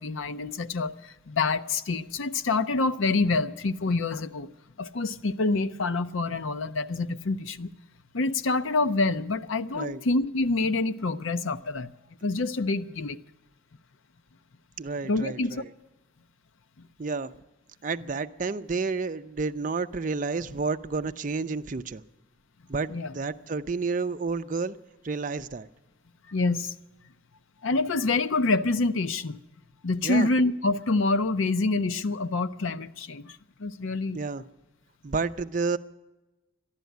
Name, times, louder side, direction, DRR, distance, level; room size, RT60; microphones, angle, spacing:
voice 1, 0.0-4.5 4.8-7.7 8.1-11.9 12.2-13.2 15.1-15.5 22.9-23.1 26.3-26.7 27.6-29.4 29.8-34.2, left 3 dB, 85° left, 0.7 m, -27 dB
voice 2, 14.8-15.7 17.0-17.3 17.8-22.0 22.7-24.8 25.0-25.7 30.0-30.3 34.1-34.4 35.0-35.8, right 4 dB, 40° right, 0.5 m, -30 dB
13.5 x 11.5 x 9.2 m
head